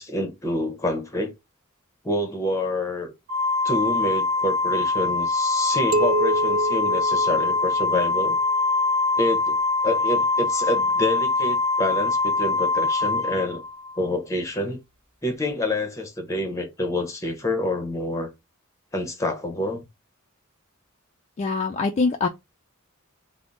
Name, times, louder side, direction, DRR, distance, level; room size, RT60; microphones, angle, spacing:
voice 1, 0.0-1.3 2.0-3.1 3.6-8.4 9.2-13.6 14.0-14.8 15.2-18.3 18.9-19.8, left 1 dB, 15° left, 0.7 m, -27 dB
Organ, 3.3-14.0, left 3 dB, 40° right, 1.2 m, -23 dB
sound 1, 5.9-8.3, right 2 dB, 70° right, 0.4 m, -27 dB
voice 2, 21.4-22.3, left 4 dB, 30° left, 0.3 m, -23 dB
3.5 x 2.0 x 3.8 m
head